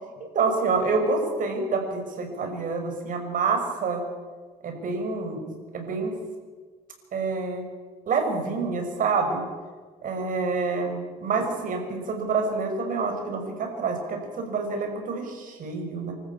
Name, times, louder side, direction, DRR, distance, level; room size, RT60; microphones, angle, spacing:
voice 1, 0.2-4.0 4.6-5.4 5.7-6.1 7.1-7.6 8.1-9.4 10.0-16.1, right 4 dB, 50° right, 3 dB, 5.7 m, -27 dB
25.5 x 14.0 x 8.7 m, 1.5 s
cardioid pair, 110°, 17 cm